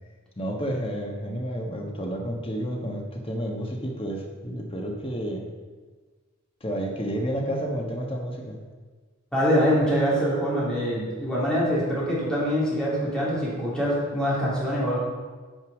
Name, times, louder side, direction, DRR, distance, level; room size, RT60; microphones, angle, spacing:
voice 1, 0.4-5.4 6.6-8.6, equal, 25° left, 1 dB, 1.4 m, -30 dB
voice 2, 9.3-15.0, equal, 5° left, -8 dB, 3.2 m, -24 dB
9.2 x 5.9 x 6.1 m, 1.4 s
head